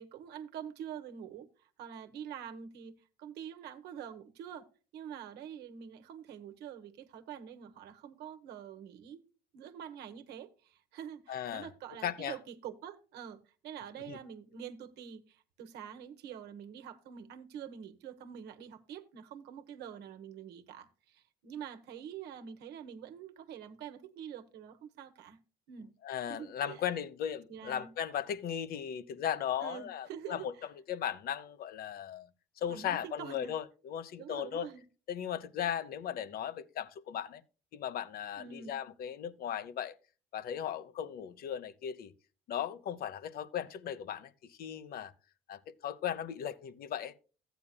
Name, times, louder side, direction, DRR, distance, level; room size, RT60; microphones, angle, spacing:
voice 1, 0.0-4.6 4.9-9.2 9.5-25.4 25.7-25.9 26.3-26.8 27.5-27.9 29.6-30.5 32.7-33.5 34.2-34.8 38.4-38.8, right 8 dB, 80° right, 1.1 m, -46 dB
voice 2, 11.3-11.7 12.0-12.4 14.1-14.2 26.0-30.5 30.9-32.3 32.6-34.7 35.1-37.4 37.7-39.9 40.3-42.1 42.5-45.1 45.5-47.1, left 9 dB, 65° left, 0.9 m, -37 dB
14.5 x 9.2 x 2.2 m
cardioid pair, 110°, 17 cm